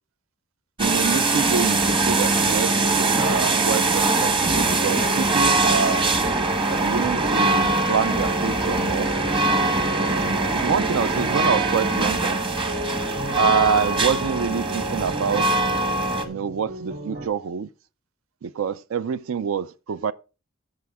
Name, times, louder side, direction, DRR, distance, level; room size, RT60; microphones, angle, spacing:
sound 1, 0.8-16.3, right 2 dB, 25° right, 1.1 m, -22 dB
voice 1, 0.8-6.1 6.7-9.1 10.0-12.4 13.4-15.5 16.2-17.7 18.4-20.1, right 6 dB, 75° right, 0.4 m, -26 dB
sound 2, 2.7-17.3, right 2 dB, 50° right, 2.3 m, -35 dB
15.5 x 5.7 x 3.5 m
head